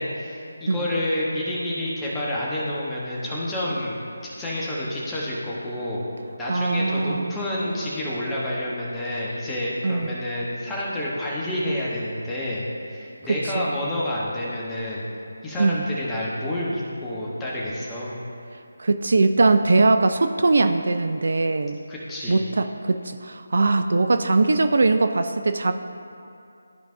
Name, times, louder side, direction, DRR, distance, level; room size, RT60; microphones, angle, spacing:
voice 1, 0.0-4.0 4.3-6.0 6.4-15.1 15.4-18.2 21.9-22.4, left 1 dB, 10° left, -7 dB, 1.2 m, -29 dB
voice 2, 6.5-7.3 9.8-10.2 13.3-13.7 15.6-15.8 18.8-21.8 22.3-25.7, right 3 dB, 55° right, 8 dB, 0.4 m, -21 dB
13.0 x 4.6 x 2.7 m, 2.5 s
figure-of-eight pair, 155°, 0 cm